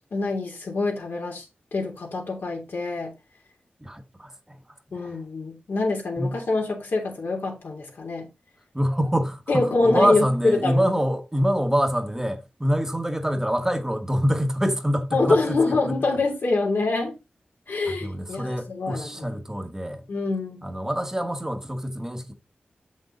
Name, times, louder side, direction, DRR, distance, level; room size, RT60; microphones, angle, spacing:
voice 1, 0.1-1.4 1.7-3.1 4.9-8.2 9.5-10.9 15.1-17.1 17.7-19.4 20.1-20.6, left 3 dB, 80° left, 3.1 m, -25 dB
voice 2, 3.8-4.6 4.9-5.2 6.2-6.4 8.7-16.0 17.9-20.1 20.6-22.3, equal, 15° right, 1.1 m, -26 dB
7.4 x 6.3 x 3.9 m
wide cardioid pair, 75°, 4 cm